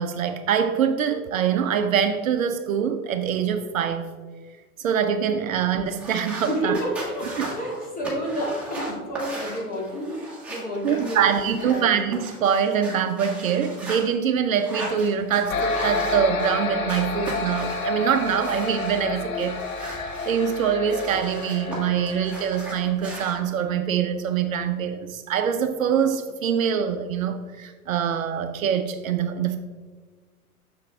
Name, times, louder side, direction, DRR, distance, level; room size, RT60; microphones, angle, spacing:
voice 1, 0.0-4.1 4.8-6.8 7.4-7.5 10.8-29.6, right 7 dB, 60° right, 8 dB, 0.6 m, -24 dB
sound 1, 5.9-11.8 12.1-14.0 14.5-16.6 16.9-19.0 19.4-21.8 22.1-23.3, right 1 dB, 5° right, 1.7 m, -38 dB
voice 2, 6.5-11.9, equal, 20° left, -3 dB, 2.1 m, -30 dB
sound 2, 15.5-22.9, left 3 dB, 65° left, 0.9 m, -30 dB
6.9 x 5.6 x 3.5 m, 1.5 s
figure-of-eight pair, 100°, 45 cm